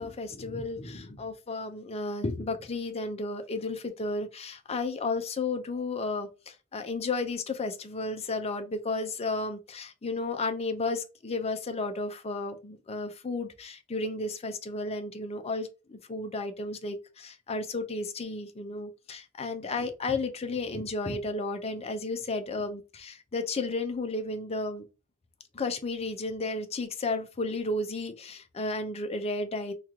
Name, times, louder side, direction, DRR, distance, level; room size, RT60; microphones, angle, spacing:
voice 1, 0.0-24.9 25.5-29.7, left 3 dB, 30° left, 0.5 m, -33 dB
3.0 x 2.4 x 3.6 m
head